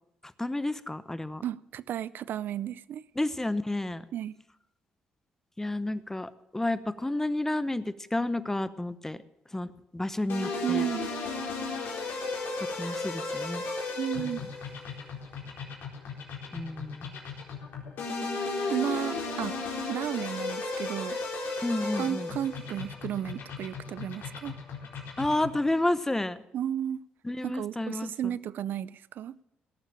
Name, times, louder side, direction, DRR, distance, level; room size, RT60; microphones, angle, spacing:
voice 1, 0.4-1.4 3.2-4.1 5.6-9.2 9.5-10.9 12.7-13.6 14.2-14.5 16.5-17.1 21.6-22.3 25.2-26.4 27.2-28.3, left 1 dB, 10° left, 0.9 m, -31 dB
voice 2, 1.4-3.0 4.1-4.4 10.6-11.1 14.0-14.4 18.7-19.6 19.9-21.2 22.0-24.5 26.5-27.0 27.4-29.3, right 10 dB, 70° right, 0.5 m, -33 dB
sound 1, 10.3-25.6, left 3 dB, 70° left, 4.3 m, -35 dB
17.5 x 7.2 x 8.7 m
supercardioid pair, 75°, 4 cm